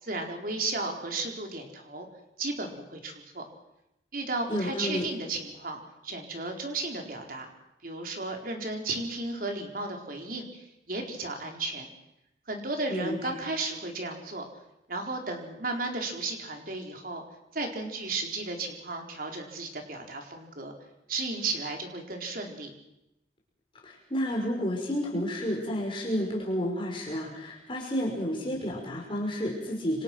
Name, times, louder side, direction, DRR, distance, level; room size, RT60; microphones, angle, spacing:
voice 1, 0.0-2.1 2.4-3.4 4.1-7.5 7.8-11.9 12.5-14.4 14.9-17.2 17.5-20.7 21.1-22.7, right 3 dB, 55° right, 2 dB, 4.3 m, -34 dB
voice 2, 4.5-5.1 12.9-13.3 23.8-30.0, equal, 30° left, -2 dB, 5.3 m, -31 dB
27.0 x 25.5 x 6.2 m, 0.88 s
head